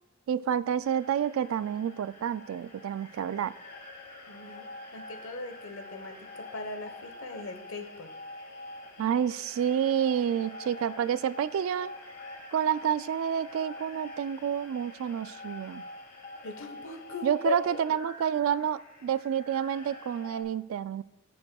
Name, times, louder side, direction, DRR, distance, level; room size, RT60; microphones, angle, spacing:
voice 1, 0.3-3.5 9.0-11.9 12.5-15.8 17.2-21.0, right 8 dB, 80° right, 16 dB, 0.3 m, -29 dB
sound 1, 0.8-20.4, left 2 dB, 45° left, 2.1 m, -46 dB
voice 2, 4.3-4.7 4.9-8.1 16.4-17.8, left 3 dB, 80° left, 7 dB, 1.1 m, -38 dB
16.0 x 6.2 x 2.3 m, 0.94 s
head